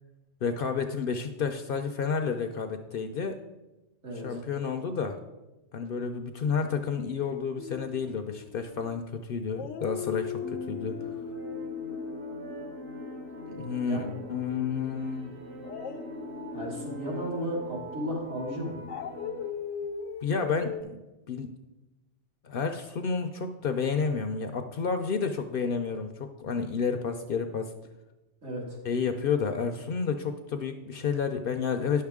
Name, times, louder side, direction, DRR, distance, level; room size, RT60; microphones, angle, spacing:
voice 1, 0.4-3.4 4.1-5.2 5.7-11.0 13.5-15.3 20.2-21.0 21.3-21.5 22.4-27.7 28.8-32.0, left 5 dB, 60° left, 7 dB, 0.6 m, -30 dB
voice 2, 4.0-4.4 13.8-14.2 16.5-18.8 28.4-28.6, equal, 75° right, -4 dB, 2.7 m, -34 dB
Dog, 7.6-9.1 9.5-14.6 15.6-20.8, left 7 dB, 90° left, 1.0 m, -40 dB
sound 1, 10.4-19.5, right 1 dB, 50° right, 1.1 m, -42 dB
9.7 x 6.5 x 3.6 m, 1.1 s
omnidirectional pair, 1.2 m